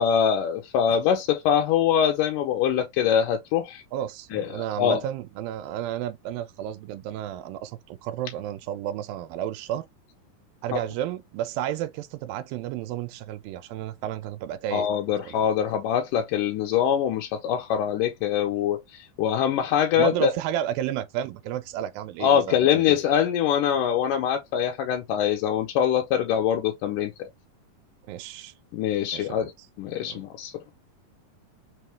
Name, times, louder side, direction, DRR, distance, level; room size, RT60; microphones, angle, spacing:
voice 1, 0.0-3.8 4.3-5.0 10.7-10.8 14.7-20.3 22.2-27.3 28.7-29.5 29.8-30.5, left 9 dB, 80° left, 2.1 m, -24 dB
voice 2, 3.9-9.9 10.6-14.9 15.3-15.7 20.0-23.0 28.1-28.5 29.1-29.5 30.0-30.2, right 11 dB, 90° right, 2.3 m, -32 dB
5.3 x 2.2 x 3.1 m
omnidirectional pair, 3.9 m